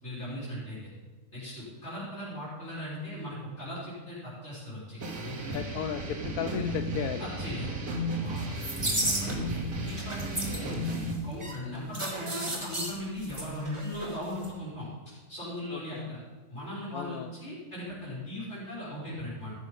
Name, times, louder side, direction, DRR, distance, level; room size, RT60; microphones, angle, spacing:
voice 1, 0.0-0.8 1.3-5.6 7.2-9.5 9.8-10.8 11.2-16.2 16.5-19.5, left 1 dB, 50° left, -9 dB, 4.8 m, -39 dB
sound 1, 5.0-11.1, right 1 dB, 85° right, 2.0 m, -34 dB
voice 2, 5.5-7.3 15.9-16.0 16.9-17.3, left 9 dB, 80° left, 6 dB, 1.0 m, -34 dB
sound 2, 8.4-9.6 9.9-14.2 14.4-14.5, right 1 dB, 20° right, 1.6 m, -33 dB
14.5 x 6.3 x 5.3 m, 1.3 s
omnidirectional pair, 1.5 m